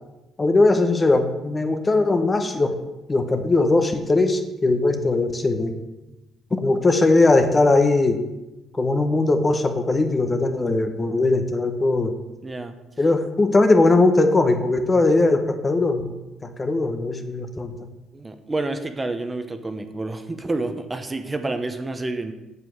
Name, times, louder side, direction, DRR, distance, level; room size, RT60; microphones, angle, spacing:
voice 1, 0.4-2.8 3.1-5.7 6.5-8.2 8.7-12.1 13.0-16.1 16.4-17.9, left 2 dB, 20° left, 7 dB, 0.9 m, -19 dB
voice 2, 12.4-12.7 18.1-22.3, right 2 dB, 15° right, 8 dB, 1.0 m, -29 dB
8.1 x 7.5 x 7.3 m, 1.0 s
cardioid pair, 125°, 0 cm